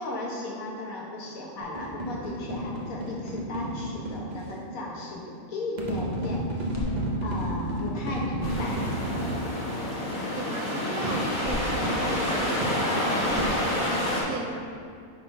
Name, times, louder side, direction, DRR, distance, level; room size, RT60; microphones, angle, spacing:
voice 1, 0.0-6.7 7.2-8.9, left 2 dB, 75° left, -3 dB, 1.5 m, -36 dB
sound 1, 1.6-4.5 5.8-9.5 11.0-14.0, equal, 45° right, 0.6 m, -32 dB
sound 2, 6.4-7.9 8.2-9.0 11.1-12.4 13.1-13.9, equal, 15° left, 0.5 m, -37 dB
sound 3, 8.4-14.2, left 1 dB, 35° left, 1.1 m, -28 dB
voice 2, 10.3-14.6, right 3 dB, 85° right, 1 dB, 1.2 m, -37 dB
5.0 x 4.1 x 5.2 m, 2.3 s
omnidirectional pair, 1.5 m